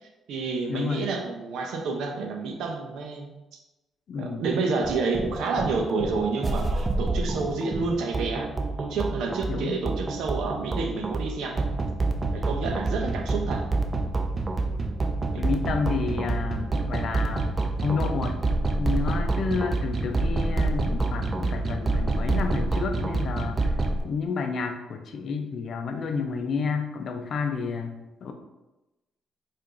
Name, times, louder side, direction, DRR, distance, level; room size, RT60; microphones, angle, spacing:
voice 1, 0.0-3.3 4.2-8.5 8.8-11.6 12.3-13.6 15.3-15.4, right 4 dB, 80° right, 3 dB, 0.5 m, -29 dB
voice 2, 0.7-1.1 4.1-4.5 9.5-9.8 15.4-17.5 17.8-18.4 18.8-23.8 24.0-28.3, left 5 dB, 60° left, 5 dB, 0.5 m, -30 dB
sound 1, 4.8-24.0, right 2 dB, 30° right, 0.4 m, -27 dB
4.6 x 2.5 x 2.5 m, 1.0 s
cardioid pair, 90°, 0 cm